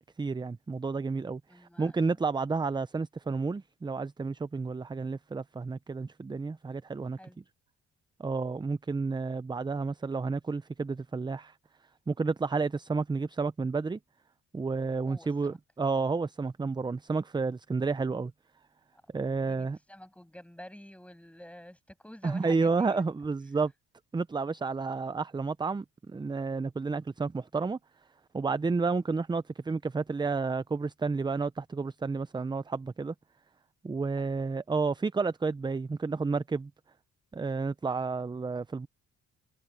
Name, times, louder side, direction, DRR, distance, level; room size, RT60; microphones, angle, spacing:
voice 1, 0.2-7.2 8.2-11.5 12.1-14.0 14.5-18.3 19.1-19.8 22.2-23.7 24.1-27.8 28.3-33.1 33.8-36.7 37.3-38.9, right 4 dB, 15° right, 0.5 m, -31 dB
voice 2, 1.5-2.0 7.2-7.4 15.1-15.6 19.3-23.0 34.2-34.3, left 1 dB, 5° left, 6.8 m, -49 dB
cardioid pair, 90°, 30 cm